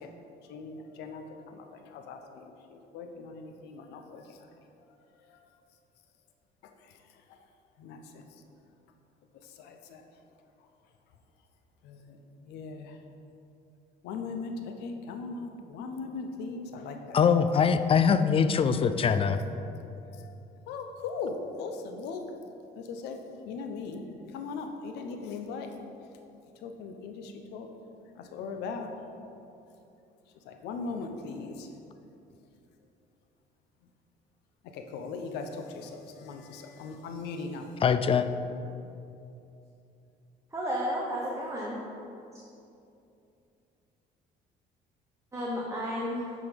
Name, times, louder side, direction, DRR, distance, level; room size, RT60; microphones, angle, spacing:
voice 1, 0.5-4.4 7.8-8.3 9.6-10.0 11.8-12.2 12.4-12.9 14.0-17.2 19.6-19.7 20.0-20.3 20.7-22.2 22.8-23.2 23.4-24.0 24.3-25.7 26.6-27.7 28.1-28.9 30.5-31.7 34.7-37.6, left 4 dB, 90° left, 5 dB, 0.8 m, -39 dB
voice 2, 17.1-19.4 37.8-38.3, left 6 dB, 35° left, 10 dB, 0.4 m, -23 dB
voice 3, 40.5-41.8 45.3-46.3, equal, 15° right, -4 dB, 1.1 m, -32 dB
9.1 x 3.9 x 5.1 m, 2.7 s
cardioid pair, 110°, 17 cm